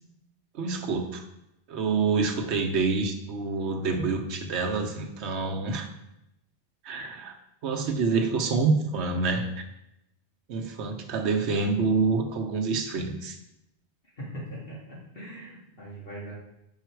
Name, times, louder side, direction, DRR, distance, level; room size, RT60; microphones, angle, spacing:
voice 1, 0.5-1.2 1.7-5.9 6.8-7.4 7.6-9.5 10.5-13.4, right 4 dB, 85° right, 4 dB, 1.1 m, -27 dB
voice 2, 14.2-16.3, right 1 dB, 55° left, -6 dB, 2.1 m, -40 dB
5.7 x 5.4 x 4.6 m, 0.86 s
omnidirectional pair, 1.1 m